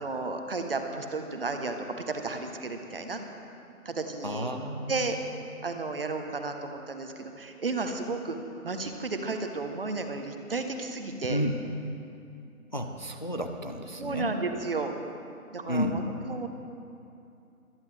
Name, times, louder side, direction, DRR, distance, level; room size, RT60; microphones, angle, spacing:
voice 1, 0.0-1.8 2.1-3.2 3.8-4.5 4.9-5.2 5.6-8.4 8.6-11.4 14.0-14.9 15.5-16.5, right 3 dB, 40° right, 6 dB, 1.0 m, -33 dB
voice 2, 4.2-5.1 11.3-11.6 12.7-14.3 15.7-16.0, equal, 35° left, 5 dB, 0.5 m, -31 dB
24.5 x 10.5 x 3.3 m, 2.6 s
hypercardioid pair, 170°, 43 cm